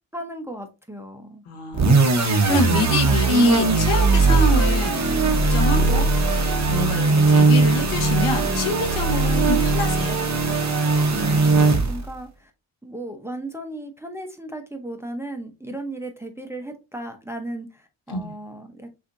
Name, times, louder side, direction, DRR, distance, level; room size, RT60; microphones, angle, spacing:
voice 1, 0.1-1.4 11.1-12.5 12.8-18.9, right 1 dB, 5° right, 0.7 m, -35 dB
voice 2, 1.5-10.2 18.1-18.3, left 3 dB, 80° left, 1.3 m, -27 dB
sound 1, 1.7-12.1, right 3 dB, 35° right, 0.9 m, -19 dB
6.4 x 2.8 x 2.6 m
wide cardioid pair, 105°, 50 cm